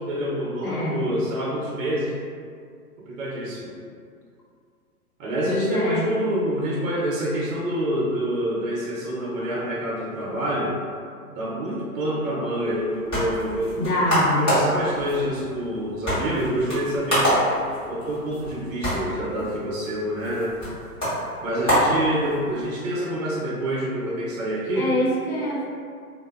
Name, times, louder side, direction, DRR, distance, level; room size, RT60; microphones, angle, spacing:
voice 1, 0.0-2.1 3.1-3.7 5.2-10.8 11.3-13.9 14.2-17.4 17.9-20.6 21.4-24.9, right 1 dB, 60° right, -5 dB, 0.8 m, -27 dB
voice 2, 0.6-1.0 5.5-6.1 13.8-14.5 24.8-25.7, left 1 dB, 70° left, -4 dB, 0.8 m, -24 dB
sound 1, 12.7-22.7, equal, 10° left, 0.7 m, -27 dB
2.5 x 2.1 x 2.4 m, 2.2 s
hypercardioid pair, 130°, 46 cm